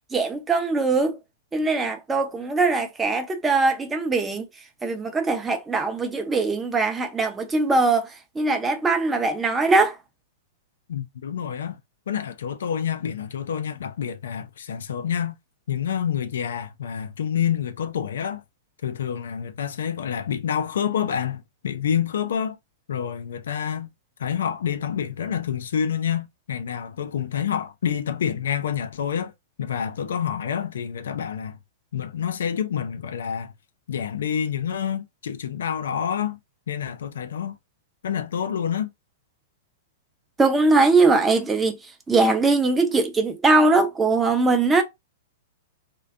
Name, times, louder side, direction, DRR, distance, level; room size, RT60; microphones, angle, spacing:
voice 1, 0.1-1.2 1.5-4.5 4.8-10.0 40.4-41.8 42.1-44.8, right 3 dB, 15° right, 0.5 m, -21 dB
voice 2, 10.9-11.8 12.1-15.4 15.7-18.4 18.8-22.6 22.9-23.9 24.2-29.3 29.6-31.6 31.9-33.5 33.9-36.4 36.7-37.6 38.0-38.9, left 8 dB, 70° left, 0.3 m, -28 dB
2.4 x 2.2 x 2.3 m
hypercardioid pair, 110°, 0 cm